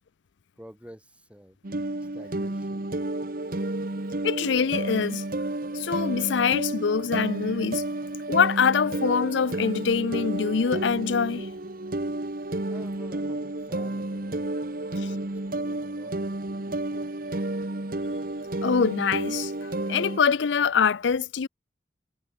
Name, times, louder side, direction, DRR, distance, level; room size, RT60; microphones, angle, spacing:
voice 1, 0.6-1.6 2.0-3.0 12.7-14.5 14.8-17.6, equal, 5° right, 4.1 m, -50 dB
sound 1, 1.6-20.2, right 2 dB, 50° right, 1.3 m, -31 dB
voice 2, 4.2-5.2 5.7-7.8 8.3-11.5 18.6-21.5, left 6 dB, 75° left, 0.5 m, -24 dB
head